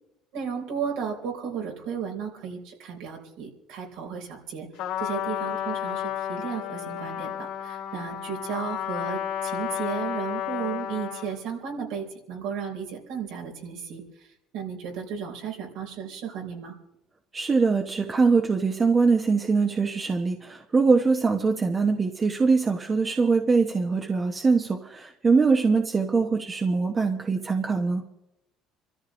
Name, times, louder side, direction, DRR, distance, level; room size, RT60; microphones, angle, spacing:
voice 1, 0.3-4.7 5.0-14.3 14.5-16.8, right 7 dB, 80° right, 1 dB, 3.8 m, -34 dB
Trumpet, 4.8-11.4, left 10 dB, 80° left, 2.7 m, -32 dB
voice 2, 17.3-28.0, right 4 dB, 25° right, 5 dB, 0.9 m, -23 dB
28.5 x 13.5 x 3.1 m, 0.86 s
cardioid pair, 115°, 0 cm